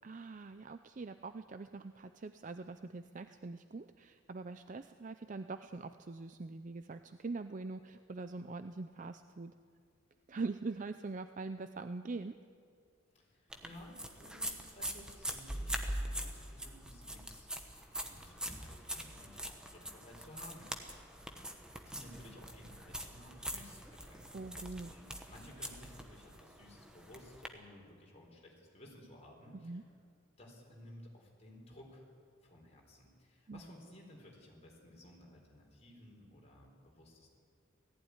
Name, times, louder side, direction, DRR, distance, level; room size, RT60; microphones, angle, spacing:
voice 1, 0.0-9.5 10.3-12.4 24.3-24.9 29.6-29.8 33.5-33.6, right 3 dB, 40° right, 10 dB, 0.5 m, -43 dB
voice 2, 13.1-21.0 21.9-24.5 24.9-29.8 30.3-32.1 32.4-37.3, left 1 dB, 30° left, -1 dB, 4.4 m, -56 dB
sound 1, 13.5-27.5, right 1 dB, 5° right, 1.2 m, -43 dB
18.0 x 15.0 x 9.8 m, 2.2 s
head